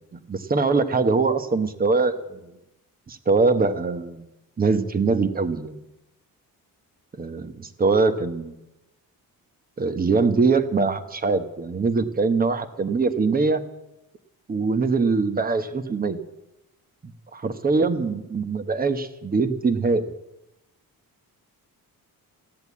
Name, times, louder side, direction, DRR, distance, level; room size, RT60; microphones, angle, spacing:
voice 1, 0.1-2.4 3.1-4.3 4.6-5.8 7.2-8.6 9.8-13.7 14.5-16.2 17.3-20.1, right 4 dB, 25° right, 11 dB, 1.0 m, -23 dB
15.5 x 10.5 x 8.4 m, 0.94 s
wide cardioid pair, 155°, 37 cm